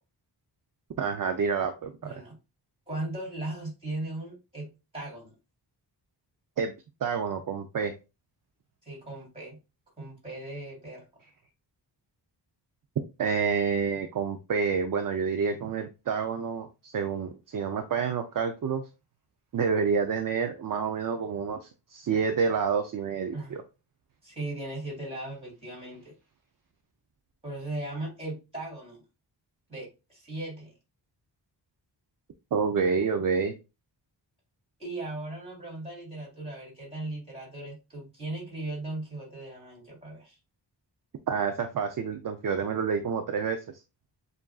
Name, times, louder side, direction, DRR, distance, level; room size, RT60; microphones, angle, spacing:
voice 1, 1.0-2.1 6.6-6.7 7.0-7.9 13.2-18.8 19.5-23.6 32.5-33.5 41.3-43.6, right 6 dB, 50° right, 6 dB, 0.5 m, -28 dB
voice 2, 2.0-2.4 2.9-5.3 8.8-9.6 10.0-11.0 23.3-23.5 24.2-26.1 27.4-29.0 29.7-30.7 34.8-40.4, right 2 dB, 15° right, -3 dB, 2.7 m, -38 dB
7.1 x 2.6 x 2.3 m, 0.28 s
wide cardioid pair, 175°, 43 cm